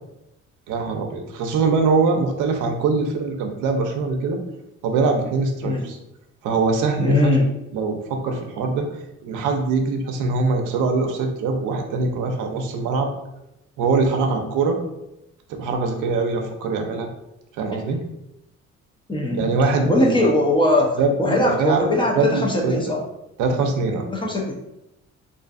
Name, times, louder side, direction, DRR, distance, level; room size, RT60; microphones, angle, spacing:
voice 1, 0.7-4.4 4.8-6.0 6.4-7.3 7.7-8.9 9.2-13.1 13.8-14.8 15.5-17.1 17.6-18.0 19.4-20.2 21.0-21.9 22.2-22.7 23.4-24.1, right 4 dB, 90° right, 4 dB, 0.5 m, -22 dB
voice 2, 7.0-7.5 17.7-17.8 19.1-19.5 19.9-23.0 24.1-24.5, left 1 dB, 15° left, -1 dB, 0.6 m, -20 dB
2.5 x 2.4 x 2.4 m, 0.87 s
cardioid pair, 90°, 30 cm